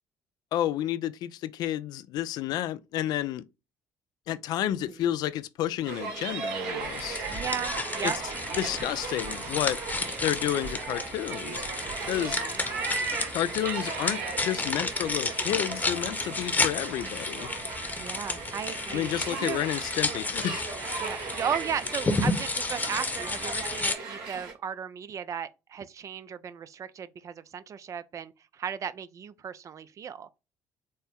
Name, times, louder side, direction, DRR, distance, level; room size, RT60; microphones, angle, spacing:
voice 1, 0.5-3.4 4.3-7.2 8.0-8.1 8.6-9.8 10.2-11.6 12.1-12.4 13.3-17.5 18.9-20.6, left 12 dB, 65° left, 0.3 m, -30 dB
sound 1, 5.8-24.5, right 4 dB, 75° right, 1.3 m, -36 dB
sound 2, 6.8-24.0, left 3 dB, 25° left, 0.9 m, -32 dB
voice 2, 7.3-8.2 12.0-12.6 18.0-19.7 21.0-30.3, right 8 dB, 45° right, 0.4 m, -36 dB
4.2 x 2.1 x 3.5 m
supercardioid pair, 65°, 7 cm